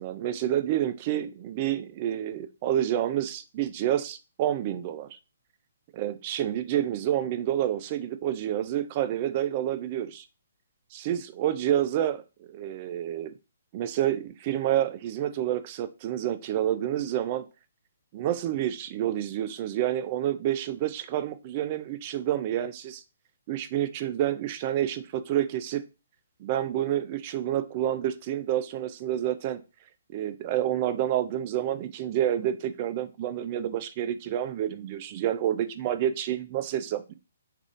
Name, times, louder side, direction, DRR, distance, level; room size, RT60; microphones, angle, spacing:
voice 1, 0.0-5.1 5.9-10.3 10.9-13.3 13.7-17.5 18.1-23.0 23.5-25.8 26.4-29.6 30.1-37.1, right 11 dB, 35° right, 0.3 m, -28 dB
3.4 x 2.4 x 2.5 m
hypercardioid pair, 150°, 0 cm